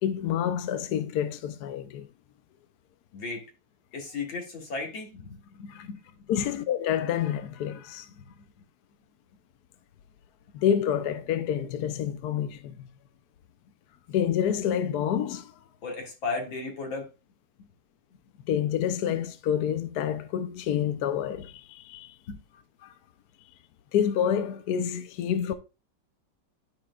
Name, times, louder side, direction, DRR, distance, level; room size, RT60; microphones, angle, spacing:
voice 1, 0.0-2.1 6.3-8.1 10.5-12.9 14.1-15.5 18.5-22.1 22.8-22.9 23.9-25.5, left 9 dB, 65° left, 1.1 m, -28 dB
voice 2, 3.1-3.5 3.9-6.5 8.1-8.5 15.8-17.1 17.6-17.7 22.3-22.4, left 4 dB, 85° left, 3.0 m, -36 dB
12.5 x 4.8 x 2.4 m
omnidirectional pair, 2.1 m